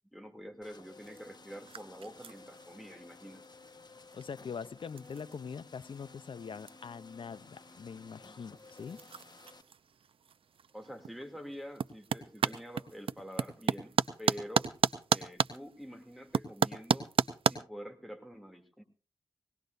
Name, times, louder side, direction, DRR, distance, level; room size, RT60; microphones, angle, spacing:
voice 1, 0.1-3.4 10.7-14.7 15.1-17.1 17.5-18.8, equal, ahead, 5 dB, 2.7 m, -47 dB
sound 1, 0.6-9.6, left 3 dB, 50° left, 1.2 m, -55 dB
sound 2, 1.0-17.6, right 7 dB, 85° right, 0.7 m, -36 dB
voice 2, 4.1-9.0, left 6 dB, 70° left, 15 dB, 0.7 m, -43 dB
20.5 x 18.0 x 2.6 m, 0.34 s
cardioid pair, 55°, 9 cm